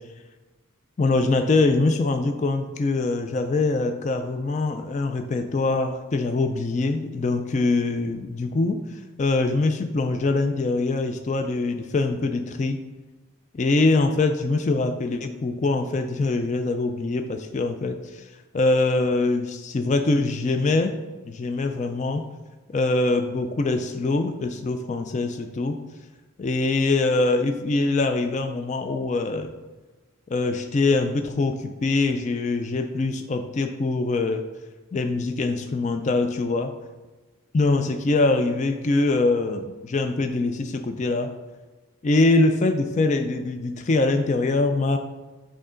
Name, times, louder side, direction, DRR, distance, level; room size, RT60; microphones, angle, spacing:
voice 1, 1.0-8.8 9.2-12.8 13.5-18.2 18.5-21.0 21.3-22.2 22.7-25.8 26.4-29.5 30.3-34.4 34.9-36.7 37.5-41.3 42.0-45.0, left 3 dB, 35° left, 7 dB, 0.3 m, -23 dB
7.8 x 3.7 x 3.7 m, 1.2 s
head